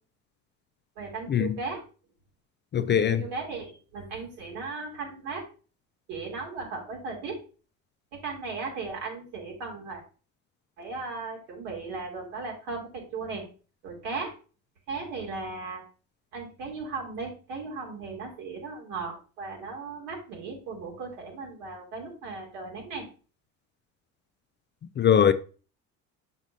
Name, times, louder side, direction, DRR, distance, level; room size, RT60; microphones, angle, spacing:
voice 1, 1.0-1.8 2.7-5.4 6.1-7.4 8.1-10.0 10.8-13.4 13.8-14.3 14.9-15.8 16.3-23.0, right 4 dB, 75° right, 2.8 m, -36 dB
voice 2, 2.7-3.2 25.0-25.3, left 8 dB, 30° left, 0.4 m, -21 dB
6.3 x 6.1 x 2.6 m
hypercardioid pair, 65°, 40 cm